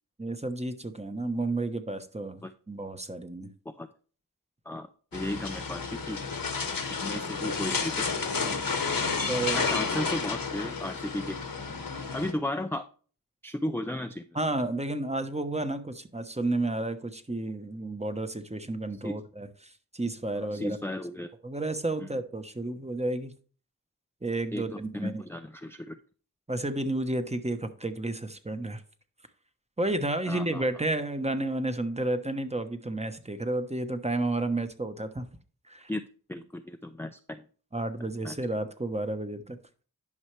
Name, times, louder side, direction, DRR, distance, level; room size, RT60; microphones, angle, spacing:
voice 1, 0.2-2.4 2.7-3.5 9.3-9.6 14.3-20.8 21.4-23.3 24.2-25.2 26.5-28.8 29.8-35.3 35.7-35.9 37.7-39.6, right 2 dB, 20° right, 1.0 m, -31 dB
sound 1, 5.1-12.3, left 4 dB, 70° left, 1.2 m, -31 dB
voice 2, 5.1-6.2 6.9-8.0 9.5-11.4 12.1-12.8 13.4-14.3 19.0-19.1 20.5-21.3 22.0-22.1 24.5-26.0 30.3-30.7 35.9-36.0 36.3-37.4 38.2-38.4, left 1 dB, 5° left, 0.5 m, -34 dB
11.0 x 5.6 x 3.3 m
cardioid pair, 40°, 35 cm